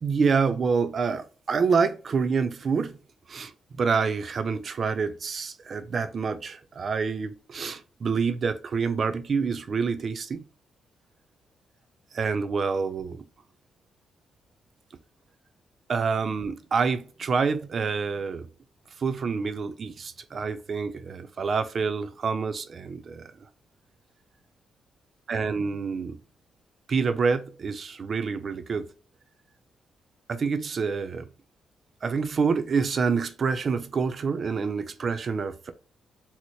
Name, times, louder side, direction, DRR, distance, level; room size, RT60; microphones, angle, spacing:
voice 1, 0.0-3.0 3.3-3.5 3.8-10.4 12.1-13.2 15.9-18.5 19.0-23.3 25.3-26.2 26.9-28.9 30.3-31.3 32.0-35.7, right 5 dB, 40° right, 0.5 m, -27 dB
4.1 x 2.0 x 3.0 m
cardioid pair, 140°, 0 cm